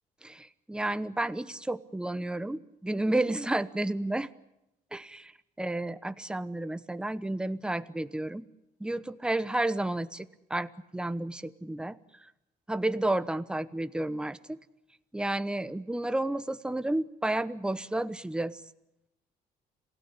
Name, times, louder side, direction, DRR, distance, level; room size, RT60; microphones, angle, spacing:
voice 1, 0.2-4.3 4.9-5.3 5.6-8.4 8.8-12.3 12.7-14.6 15.1-18.6, right 1 dB, 5° right, 13 dB, 0.9 m, -31 dB
27.0 x 17.0 x 9.8 m, 0.89 s
cardioid pair, 110°, 17 cm